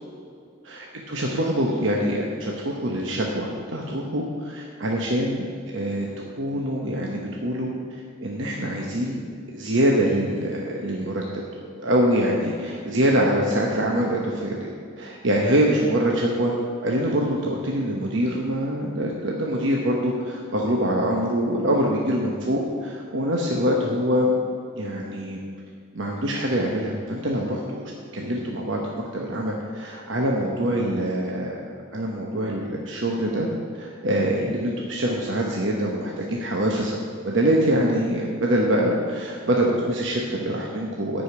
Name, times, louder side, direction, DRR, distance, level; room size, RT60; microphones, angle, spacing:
voice 1, 0.6-5.5 5.7-6.1 6.4-7.7 8.2-9.2 9.5-11.2 11.5-14.7 15.0-16.5 16.8-24.3 24.7-25.4 25.9-27.8 28.1-28.8 29.1-33.5 33.7-41.2, equal, 65° right, -1 dB, 1.0 m, -24 dB
11.0 x 5.1 x 8.4 m, 2.3 s
head